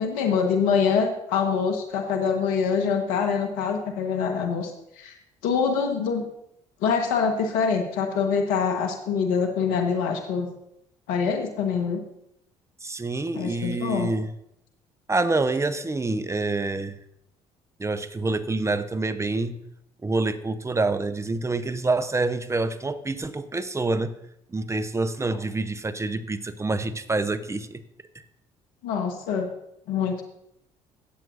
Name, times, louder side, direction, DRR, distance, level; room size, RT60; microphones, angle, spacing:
voice 1, 0.0-4.7 5.0-5.1 5.4-6.2 6.8-10.5 11.1-12.0 13.3-14.1 28.8-29.5 29.9-30.2, left 6 dB, 80° left, 3 dB, 1.4 m, -25 dB
voice 2, 12.8-14.3 15.1-16.9 17.8-19.5 20.0-24.1 24.5-27.8, right 3 dB, 20° right, 12 dB, 0.9 m, -27 dB
17.0 x 7.6 x 2.6 m, 0.78 s
hypercardioid pair, 60°, 15 cm